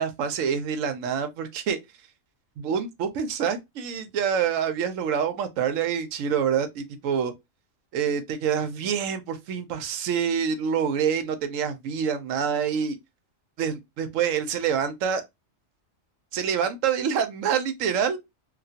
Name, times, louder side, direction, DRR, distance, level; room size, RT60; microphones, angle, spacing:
voice 1, 0.0-1.8 2.6-7.3 7.9-13.0 13.6-15.2 16.3-18.2, right 7 dB, 80° right, 1.0 m, -26 dB
3.0 x 2.4 x 2.7 m
omnidirectional pair, 1.3 m